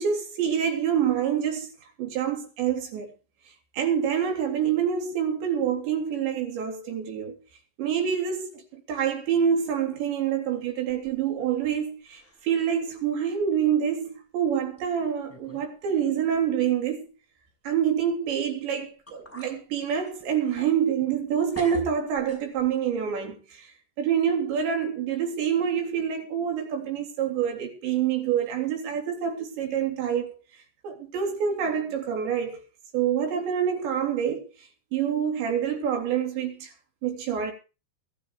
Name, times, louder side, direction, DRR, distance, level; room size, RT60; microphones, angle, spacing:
voice 1, 0.0-1.7 2.0-3.1 3.7-7.4 7.8-17.1 17.7-23.7 24.0-30.4 30.8-32.6 32.9-34.5 34.9-36.7 37.0-37.5, right 8 dB, 80° right, 5.6 m, -26 dB
sound 1, 10.9-11.8 12.1-12.5 13.0-13.1 13.9-14.1 14.8-14.9 15.3-15.7 16.0-16.1 18.6-18.7 19.1-19.6 20.0-21.3 21.5-22.8, equal, 5° left, 5.0 m, -46 dB
21.5 x 13.0 x 3.2 m
omnidirectional pair, 5.0 m